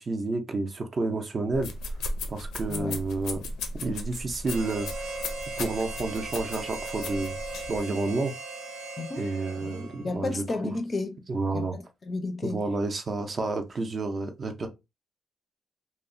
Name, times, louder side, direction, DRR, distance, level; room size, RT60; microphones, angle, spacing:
voice 1, 0.0-1.7 2.3-3.4 3.7-5.1 5.6-7.4 7.7-8.3 9.2-10.4 11.3-11.7 12.4-14.7, right 3 dB, 35° right, 0.4 m, -30 dB
sound 1, 1.5-7.8, left 2 dB, 90° left, 0.5 m, -36 dB
voice 2, 2.7-3.0 9.0-9.3 9.6-12.6, left 3 dB, 30° left, 0.4 m, -33 dB
Harmonica, 4.4-10.2, right 3 dB, 75° right, 0.6 m, -38 dB
2.8 x 2.0 x 2.5 m
cardioid pair, 135°, 0 cm